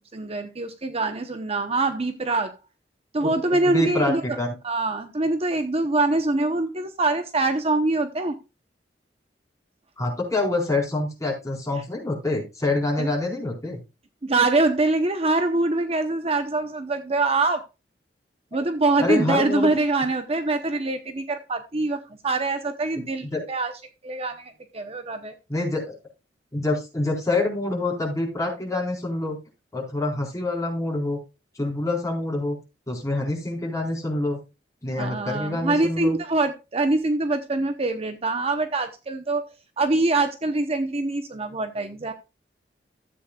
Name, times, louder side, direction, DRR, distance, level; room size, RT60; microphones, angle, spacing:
voice 1, 0.0-2.6 3.1-4.4 4.6-8.3 13.0-13.1 14.2-17.6 18.5-23.7 24.0-25.3 35.0-39.5 39.8-42.1, right 2 dB, 35° right, 8 dB, 0.9 m, -24 dB
voice 2, 3.2-4.6 10.0-13.8 19.0-19.7 23.2-23.4 25.5-26.0 26.5-29.4 29.7-31.2 31.6-32.6 32.9-34.4 34.8-36.2, left 2 dB, 20° left, 0 dB, 4.3 m, -26 dB
14.0 x 8.3 x 2.3 m, 0.26 s
head